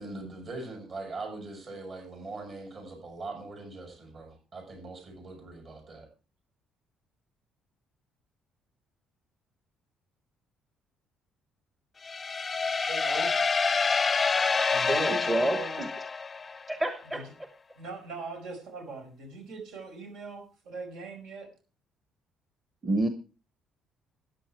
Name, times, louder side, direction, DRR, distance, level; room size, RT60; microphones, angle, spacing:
voice 1, 0.0-6.1, right 3 dB, 45° right, 2 dB, 7.6 m, -41 dB
sound 1, 12.0-16.7, left 4 dB, 25° left, 0.5 m, -27 dB
voice 2, 12.9-13.3 14.7-15.8 17.1-17.2 17.8-21.5, right 4 dB, 80° right, 3 dB, 5.0 m, -40 dB
voice 3, 14.9-15.9 16.7-17.2 22.8-23.1, right 1 dB, 15° right, 8 dB, 1.1 m, -28 dB
13.5 x 10.5 x 4.6 m, 0.35 s
cardioid pair, 130°, 0 cm